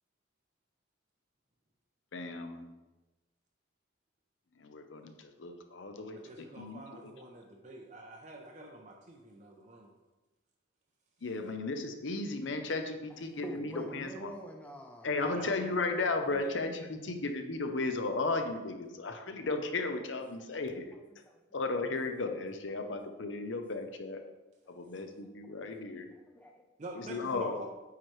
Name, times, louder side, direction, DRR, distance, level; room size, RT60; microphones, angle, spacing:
voice 1, 2.1-2.7 4.6-6.2 6.6-6.8 11.2-14.3 15.0-20.9 21.5-24.2 24.7-26.1 26.9-27.6, left 3 dB, 75° left, 6 dB, 0.7 m, -35 dB
voice 2, 6.1-9.9 15.3-15.8 16.3-16.5 26.8-27.7, right 2 dB, 40° right, 1 dB, 0.6 m, -47 dB
voice 3, 13.4-15.5 20.0-20.2 20.5-20.8 21.3-21.4 22.7-22.8 24.8-24.9 25.2-25.7 26.1-26.6 27.0-27.4, equal, 5° left, 2 dB, 0.6 m, -47 dB
8.5 x 4.6 x 3.2 m, 1.1 s
head